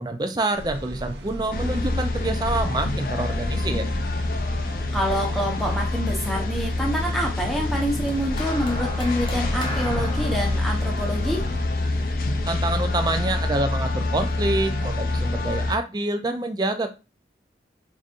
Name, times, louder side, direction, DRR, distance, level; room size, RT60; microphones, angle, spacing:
voice 1, 0.0-3.9 12.5-16.9, right 2 dB, 25° right, 7 dB, 0.4 m, -27 dB
sound 1, 0.5-11.6, equal, 80° right, 0.6 m, -35 dB
sound 2, 1.5-15.8, left 2 dB, 55° left, 0.4 m, -26 dB
voice 2, 4.9-11.5, equal, ahead, -1 dB, 0.9 m, -27 dB
sound 3, 8.1-12.5 13.4-13.7, left 1 dB, 30° left, 0.8 m, -37 dB
4.9 x 2.7 x 2.5 m, 0.29 s
head